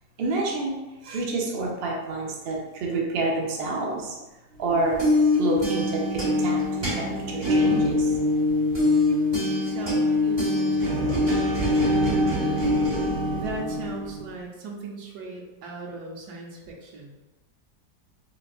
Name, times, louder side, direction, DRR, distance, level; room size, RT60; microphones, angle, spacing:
voice 1, 0.2-0.7 1.0-4.2 4.6-5.0 5.4-6.6 6.9-8.1, right 2 dB, 90° right, -2 dB, 0.5 m, -28 dB
sound 1, 4.7-14.3, left 2 dB, 25° right, 0.6 m, -23 dB
voice 2, 9.6-11.3 13.3-17.1, right 3 dB, 70° right, 0 dB, 1.1 m, -38 dB
4.2 x 2.4 x 2.4 m, 1.1 s
omnidirectional pair, 1.9 m